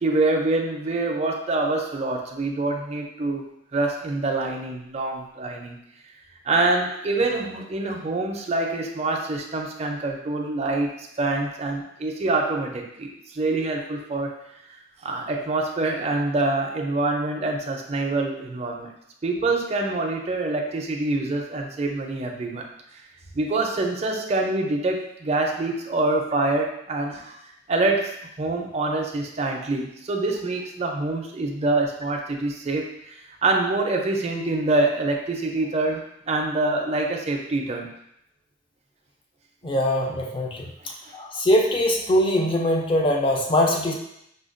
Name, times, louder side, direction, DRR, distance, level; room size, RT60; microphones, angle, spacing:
voice 1, 0.0-3.4 3.7-5.8 6.5-13.1 13.3-14.4 15.0-18.9 19.2-22.7 23.3-27.4 27.7-28.1 28.4-37.9, right 2 dB, 35° right, 1 dB, 0.4 m, -25 dB
voice 2, 39.6-40.7 41.1-43.9, left 1 dB, 25° left, 1 dB, 0.4 m, -22 dB
4.9 x 2.2 x 2.5 m, 0.77 s
head